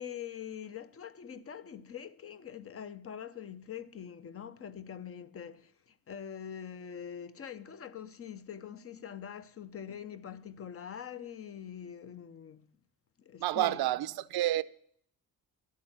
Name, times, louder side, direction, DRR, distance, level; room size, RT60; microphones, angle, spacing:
voice 1, 0.0-12.7 13.2-14.2, left 8 dB, 40° left, 0.6 m, -44 dB
voice 2, 13.4-14.6, right 14 dB, 80° right, 0.6 m, -29 dB
12.0 x 8.3 x 6.0 m
cardioid pair, 135°, 37 cm